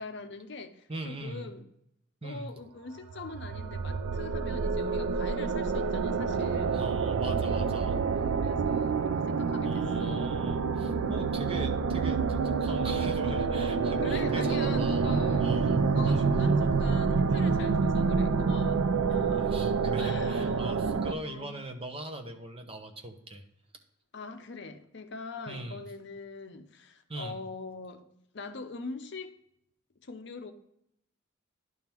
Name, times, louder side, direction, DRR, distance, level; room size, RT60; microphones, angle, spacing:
voice 1, 0.0-1.6 2.2-6.8 8.3-10.4 11.4-11.7 14.0-15.5 15.9-19.7 20.0-20.6 21.0-21.7 24.1-28.1 28.3-29.4 30.0-30.5, left 4 dB, 55° left, 0.6 m, -43 dB
voice 2, 0.9-1.5 2.2-2.5 6.7-8.0 9.6-15.1 15.4-15.8 16.1-16.2 17.3-17.4 19.4-23.4 25.5-25.8 27.1-27.4, right 1 dB, 25° right, 0.7 m, -41 dB
sound 1, 3.1-21.1, right 5 dB, 90° right, 0.4 m, -27 dB
10.5 x 3.7 x 4.3 m
head